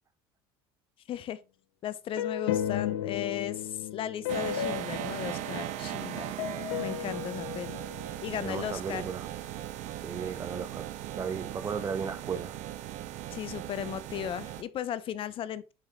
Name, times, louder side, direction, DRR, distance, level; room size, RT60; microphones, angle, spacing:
voice 1, 1.1-1.4 1.8-6.4 6.8-7.8 8.2-9.1 13.3-15.7, left 10 dB, 45° left, 0.6 m, -36 dB
sound 1, 2.2-6.0 6.4-8.4, left 10 dB, 90° left, 0.6 m, -34 dB
sound 2, 4.3-14.6, right 13 dB, 60° right, 0.8 m, -38 dB
voice 2, 8.4-9.3 9.9-12.6, right 6 dB, 25° right, 0.7 m, -35 dB
5.8 x 5.4 x 3.5 m
supercardioid pair, 100°, 13 cm